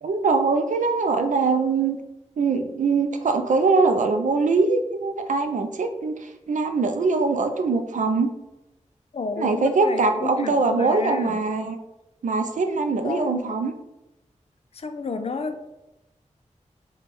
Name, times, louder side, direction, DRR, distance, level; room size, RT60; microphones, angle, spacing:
voice 1, 0.0-2.0 2.4-8.3 9.4-11.8 12.2-13.7, right 4 dB, 80° right, 6 dB, 0.4 m, -22 dB
voice 2, 9.1-11.4 13.0-13.3 14.7-15.7, left 4 dB, 50° left, 7 dB, 0.4 m, -31 dB
3.3 x 2.3 x 4.1 m, 0.94 s
wide cardioid pair, 95°, 13 cm